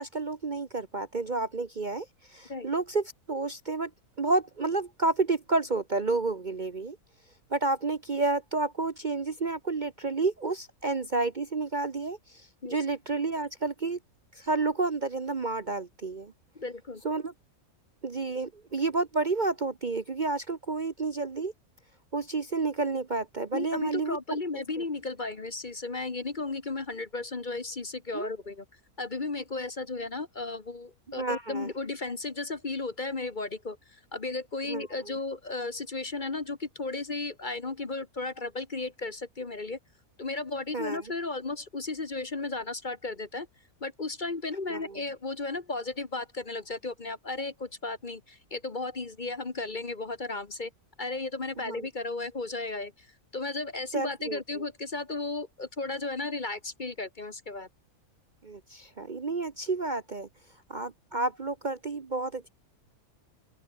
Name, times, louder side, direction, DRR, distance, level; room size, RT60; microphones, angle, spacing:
voice 1, 0.0-3.9 4.2-7.0 7.5-14.0 14.3-16.3 17.0-17.3 18.0-21.5 22.1-24.2 28.1-28.3 31.2-31.7 34.6-35.1 40.7-41.0 44.7-45.0 51.6-51.9 53.9-54.6 58.4-60.3 60.7-62.5, right 3 dB, 35° right, 1.0 m, -30 dB
voice 2, 16.5-17.0 23.5-28.6 29.0-39.8 40.2-43.5 43.8-50.7 51.0-53.1 53.3-57.7, left 3 dB, 35° left, 1.4 m, -34 dB
open air
omnidirectional pair, 1.6 m